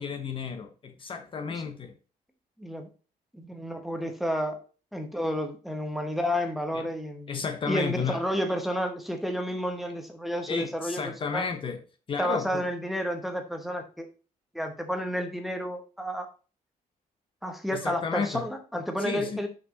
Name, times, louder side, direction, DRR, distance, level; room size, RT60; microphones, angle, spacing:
voice 1, 0.0-1.9 6.7-6.8 7.3-8.2 10.5-11.8 12.1-12.7 17.7-18.4 19.0-19.4, left 5 dB, 35° left, 0.8 m, -32 dB
voice 2, 3.3-4.6 4.9-7.4 7.7-11.0 11.3-11.4 12.2-14.1 14.5-16.3 17.4-19.5, equal, ahead, 0.9 m, -31 dB
6.0 x 5.5 x 4.0 m
cardioid pair, 175°, 16 cm